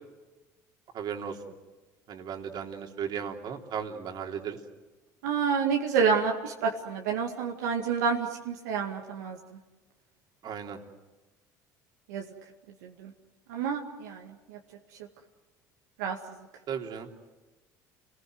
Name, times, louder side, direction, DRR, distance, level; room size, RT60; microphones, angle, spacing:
voice 1, 0.9-1.3 2.1-4.6 10.4-10.8 16.7-17.1, right 7 dB, 55° right, 2 dB, 3.4 m, -35 dB
voice 2, 5.2-9.4 12.1-12.2 13.5-14.2 16.0-16.2, right 6 dB, 85° right, 0 dB, 2.1 m, -28 dB
29.5 x 20.5 x 8.0 m, 1.2 s
hypercardioid pair, 75°, 9 cm